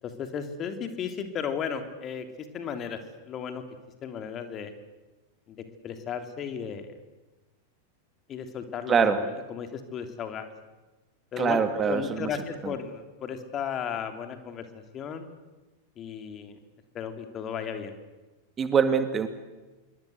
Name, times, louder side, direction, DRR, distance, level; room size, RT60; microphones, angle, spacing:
voice 1, 0.0-3.0 3.3-3.6 4.0-4.7 5.5-5.6 5.8-6.9 8.3-10.5 11.3-11.6 11.9-14.6 14.9-15.3 16.0-16.6 16.9-17.9, left 7 dB, 30° left, 7 dB, 3.0 m, -34 dB
voice 2, 8.9-9.2 11.4-12.3 12.6-12.7 18.6-19.3, right 6 dB, 20° right, 9 dB, 2.3 m, -24 dB
26.5 x 23.5 x 7.9 m, 1.1 s
figure-of-eight pair, 90°, 0 cm